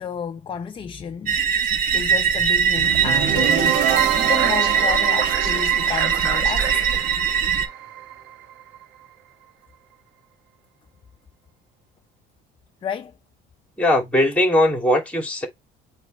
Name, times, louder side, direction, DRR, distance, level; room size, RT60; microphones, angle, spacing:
voice 1, 0.0-1.4 1.9-7.1 12.8-13.1, left 7 dB, 25° left, 0.6 m, -31 dB
sound 1, 1.3-7.7, right 7 dB, 45° right, 2.0 m, -21 dB
sound 2, 2.8-8.8, right 10 dB, 65° right, 1.3 m, -26 dB
voice 2, 13.8-15.5, left 1 dB, 5° left, 3.0 m, -19 dB
8.3 x 3.3 x 4.2 m
cardioid pair, 125°, 20 cm